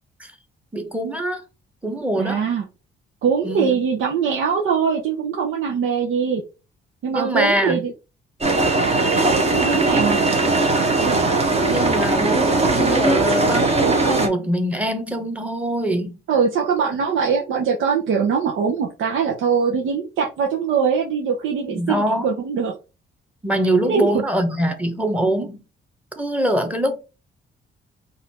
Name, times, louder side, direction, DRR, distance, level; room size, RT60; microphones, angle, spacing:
voice 1, 0.7-1.4 1.8-2.5 3.4-3.8 7.1-7.8 9.1-9.3 9.6-9.8 11.7-16.2 21.7-22.4 23.4-25.6 26.2-27.0, right 1 dB, 5° right, 1.1 m, -23 dB
voice 2, 2.2-2.6 3.2-6.4 7.0-7.9 9.4-10.2 16.3-22.7 23.8-24.1, right 6 dB, 80° right, 0.9 m, -22 dB
sound 1, 8.4-14.3, right 2 dB, 30° right, 1.3 m, -19 dB
4.1 x 2.6 x 4.2 m
cardioid pair, 90°, 20 cm